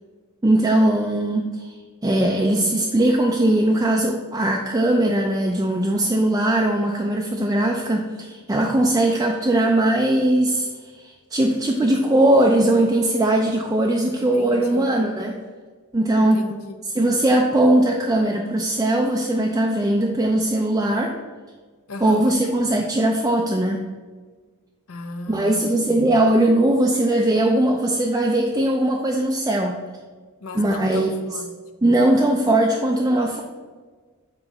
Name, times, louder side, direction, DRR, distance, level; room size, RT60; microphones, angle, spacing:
voice 1, 0.4-1.7 2.0-10.7 11.3-15.4 15.9-16.4 16.9-21.1 22.0-23.9 25.3-29.8 30.5-31.2 31.8-33.4, right 1 dB, 15° right, 0 dB, 0.4 m, -20 dB
voice 2, 14.2-14.9 16.2-16.8 21.9-22.4 24.9-25.7 30.4-31.5, left 2 dB, 70° left, 6 dB, 0.7 m, -35 dB
7.8 x 3.0 x 5.4 m, 1.4 s
head